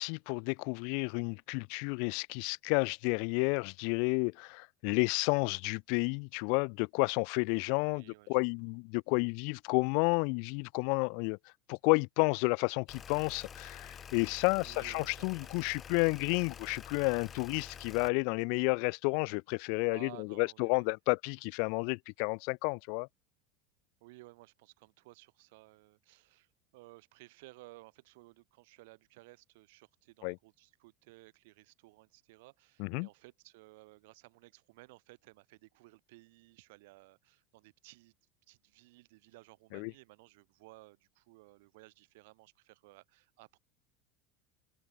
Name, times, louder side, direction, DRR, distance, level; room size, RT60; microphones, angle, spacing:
voice 1, 0.0-11.4 11.7-23.1 30.2-30.4 32.8-33.1 39.7-39.9, left 40 dB or more, 60° left, 0.7 m, -31 dB
voice 2, 7.8-8.4 14.5-16.4 19.9-20.9 24.0-38.1 38.5-43.6, right 22 dB, 75° right, 6.9 m, -57 dB
sound 1, 12.9-18.1, left 8 dB, 25° left, 1.4 m, -48 dB
cardioid pair, 160°, 0 cm